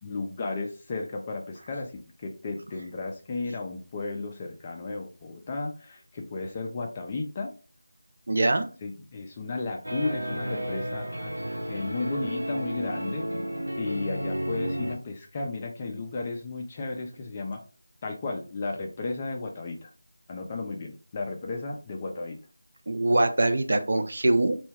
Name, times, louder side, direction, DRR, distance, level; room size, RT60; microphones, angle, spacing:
voice 1, 0.0-1.9 2.2-7.5 8.8-11.3 11.7-13.3 13.8-17.6 18.0-19.9 20.3-22.4, left 3 dB, 20° left, 1 dB, 0.3 m, -34 dB
voice 2, 8.3-8.7 22.9-24.6, right 2 dB, 50° right, 7 dB, 0.4 m, -23 dB
sound 1, 9.8-15.0, right 1 dB, 90° right, 0.8 m, -32 dB
2.2 x 2.2 x 3.3 m, 0.36 s
figure-of-eight pair, 165°, 0 cm